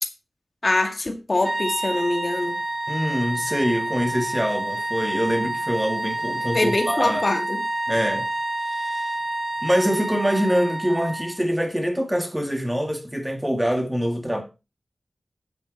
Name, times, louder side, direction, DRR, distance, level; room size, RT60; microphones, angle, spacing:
voice 1, 0.6-2.6 6.5-7.6, left 2 dB, 45° left, 2.0 m, -24 dB
sound 1, 1.4-11.4, right 1 dB, 35° right, 4.4 m, -28 dB
voice 2, 2.9-7.2 7.9-8.3 8.6-9.1 9.6-14.4, equal, 10° right, 2.1 m, -24 dB
9.7 x 9.5 x 4.1 m
wide cardioid pair, 85°, 0 cm